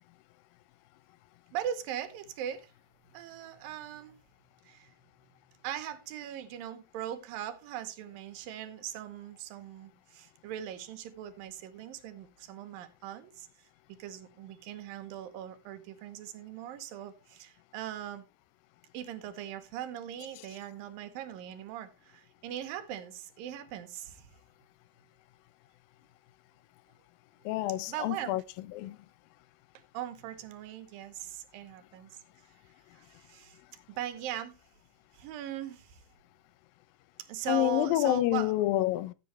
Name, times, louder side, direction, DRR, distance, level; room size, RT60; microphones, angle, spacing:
voice 1, 1.5-2.7 3.1-4.2 4.6-4.9 5.3-13.5 14.0-18.2 18.9-24.3 27.9-28.4 29.9-32.2 32.9-33.6 33.9-34.5 35.1-36.0 37.3-38.6, right 10 dB, 85° right, 2.8 m, -40 dB
voice 2, 27.5-28.4 28.8-29.0 37.5-39.1, left 16 dB, 90° left, 2.4 m, -28 dB
14.0 x 7.7 x 3.1 m
omnidirectional pair, 4.0 m